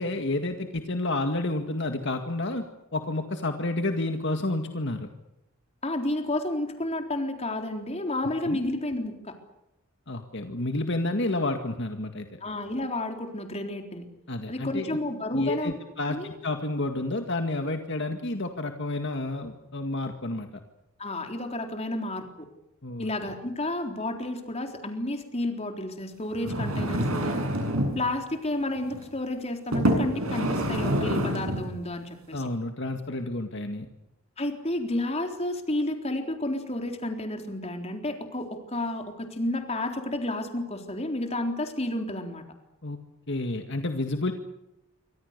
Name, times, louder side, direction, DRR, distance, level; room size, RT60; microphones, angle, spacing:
voice 1, 0.0-2.6 2.9-5.1 8.5-8.6 10.1-12.4 14.3-15.0 15.3-20.5 22.8-23.1 32.3-33.9 42.8-43.0 43.3-44.3, left 2 dB, 55° left, 6 dB, 2.0 m, -30 dB
voice 2, 5.8-9.3 12.4-14.1 14.5-15.7 16.1-16.3 21.0-22.5 23.0-27.4 28.0-32.4 34.4-42.4, left 1 dB, 30° left, 5 dB, 3.9 m, -31 dB
sound 1, 26.3-28.0 28.8-29.0 29.7-31.7 32.3-32.4, equal, 85° right, 7.9 m, -27 dB
28.5 x 25.0 x 6.8 m, 0.87 s
head